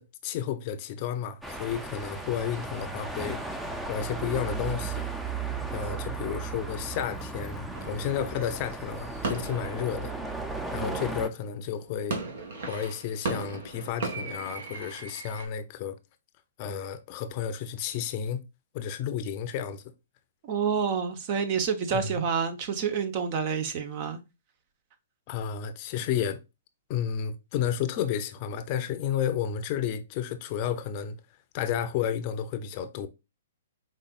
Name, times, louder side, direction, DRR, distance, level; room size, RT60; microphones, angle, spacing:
voice 1, 0.0-5.0 5.7-10.1 10.7-12.2 12.7-16.0 16.6-18.4 18.7-19.8 21.9-22.1 25.3-26.4 26.9-31.2 31.5-33.1, left 9 dB, 40° left, 0.6 m, -32 dB
sound 1, 1.4-11.3, right 3 dB, 5° right, 0.6 m, -35 dB
sound 2, 7.7-11.3 11.8-15.5, right 3 dB, 60° right, 1.6 m, -37 dB
voice 2, 20.4-24.2, right 6 dB, 40° right, 1.0 m, -28 dB
5.4 x 3.9 x 2.4 m
hypercardioid pair, 140°, 0 cm